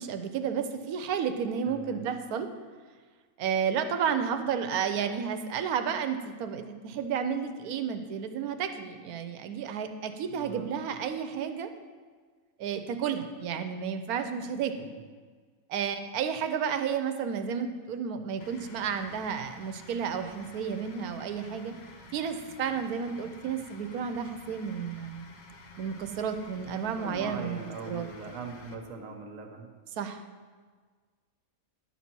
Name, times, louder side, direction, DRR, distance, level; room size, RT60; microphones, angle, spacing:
voice 1, 0.0-2.5 3.4-11.7 12.6-14.9 15.7-21.7 22.1-25.2 25.8-28.1 30.0-30.2, right 7 dB, 90° right, 8 dB, 1.1 m, -32 dB
voice 2, 1.6-2.0 10.3-10.7 14.8-15.0 26.8-29.7, right 4 dB, 65° right, 4 dB, 1.3 m, -41 dB
sound 1, 18.4-28.7, left 2 dB, 40° left, 0.6 m, -51 dB
10.5 x 4.1 x 6.0 m, 1.5 s
omnidirectional pair, 1.5 m